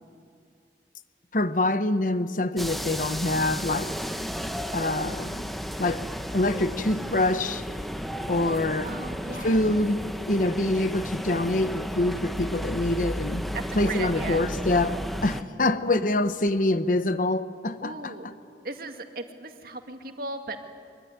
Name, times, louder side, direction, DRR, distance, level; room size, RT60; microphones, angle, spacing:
voice 1, 1.3-3.9 4.7-5.5 5.8-6.0 6.3-7.6 8.3-9.0 9.4-10.0 10.3-13.5 13.7-18.3, left 2 dB, 45° left, 1.1 m, -25 dB
sound 1, 2.6-15.4, equal, ahead, 0.9 m, -33 dB
voice 2, 8.8-9.6 13.5-14.4 17.8-18.3 18.6-20.6, right 3 dB, 55° right, 2.1 m, -37 dB
24.0 x 23.5 x 9.7 m
head